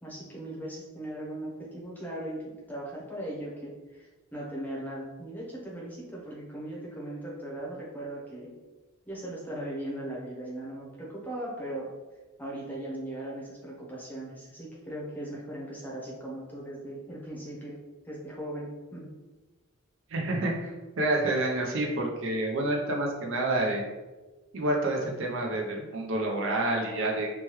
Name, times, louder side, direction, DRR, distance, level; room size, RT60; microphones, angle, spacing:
voice 1, 0.0-8.5 9.1-11.9 12.4-17.8 18.0-19.1, right 1 dB, 10° left, -5 dB, 0.7 m, -38 dB
voice 2, 20.1-23.8 24.5-27.3, right 2 dB, 65° right, 0 dB, 0.5 m, -28 dB
3.1 x 2.2 x 3.0 m, 1.2 s
head